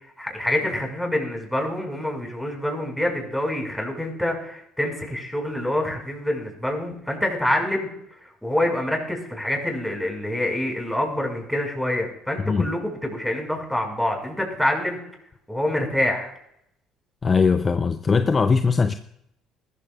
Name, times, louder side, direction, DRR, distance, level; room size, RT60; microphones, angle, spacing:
voice 1, 0.0-15.0 15.5-16.3, left 1 dB, 5° left, 1 dB, 5.6 m, -26 dB
voice 2, 17.2-18.9, left 5 dB, 35° left, 10 dB, 0.6 m, -20 dB
20.5 x 14.0 x 2.5 m, 0.75 s
hypercardioid pair, 60°, 0 cm